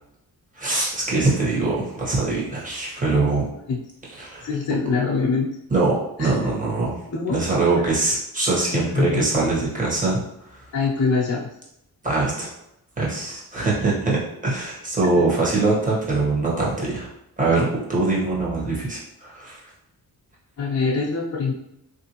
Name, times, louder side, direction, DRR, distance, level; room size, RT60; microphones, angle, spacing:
voice 1, 0.6-3.5 4.2-4.5 5.7-7.0 7.3-10.2 10.5-10.6 12.0-12.5 13.0-17.1 17.4-19.6, right 3 dB, 20° right, -5 dB, 1.1 m, -23 dB
voice 2, 4.4-5.5 6.2-6.3 7.1-7.4 7.8-7.9 8.7-9.3 10.7-11.5 15.0-15.2 20.6-21.5, left 4 dB, 45° left, -5 dB, 0.6 m, -24 dB
3.5 x 2.5 x 2.9 m, 0.81 s
cardioid pair, 110°, 39 cm